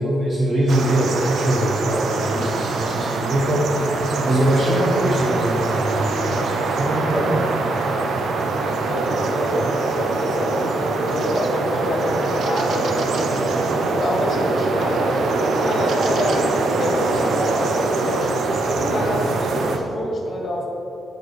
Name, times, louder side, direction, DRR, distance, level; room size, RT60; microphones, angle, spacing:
voice 1, 0.0-7.4, right 1 dB, 40° right, -4 dB, 1.0 m, -22 dB
sound 1, 0.7-19.8, right 3 dB, 70° right, 0.7 m, -23 dB
voice 2, 7.1-8.0 8.9-15.1 15.5-20.7, left 1 dB, 40° left, -2 dB, 1.8 m, -27 dB
12.5 x 4.5 x 3.3 m, 2.8 s
cardioid pair, 135°, 0 cm